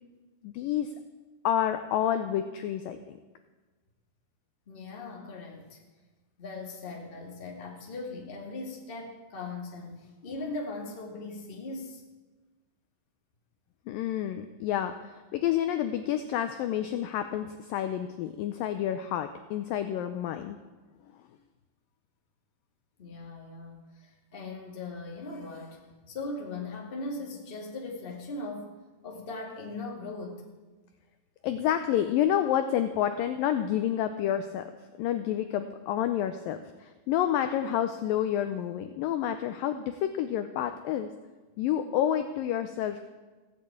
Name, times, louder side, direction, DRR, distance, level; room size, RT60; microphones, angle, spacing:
voice 1, 0.4-0.9 1.4-3.2 13.9-20.6 31.4-34.6 35.0-41.1 41.6-43.1, left 10 dB, 80° left, 9 dB, 2.1 m, -29 dB
voice 2, 4.7-5.8 6.4-12.0 23.0-25.8 26.1-28.7 29.0-30.4, left 2 dB, 20° left, 0 dB, 1.5 m, -39 dB
16.0 x 8.4 x 8.6 m, 1.3 s
omnidirectional pair, 4.7 m